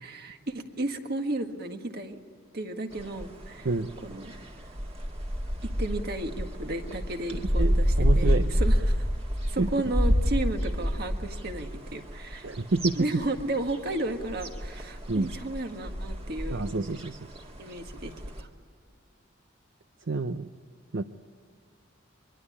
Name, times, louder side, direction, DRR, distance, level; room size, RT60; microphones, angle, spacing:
voice 1, 0.0-2.2 2.5-3.7 4.0-4.3 5.6-9.1 9.5-12.5 13.0-16.7 17.6-18.1 18.4-18.5, right 2 dB, 50° right, 5 dB, 1.7 m, -33 dB
sound 1, 2.9-18.4, equal, 30° right, 2.0 m, -29 dB
voice 2, 7.6-8.6 9.6-9.7 12.4-13.0 15.1-15.3 16.5-17.2 20.1-20.5 20.9-21.0, right 3 dB, 70° right, 9 dB, 0.7 m, -28 dB
24.0 x 23.0 x 9.9 m, 2.1 s
head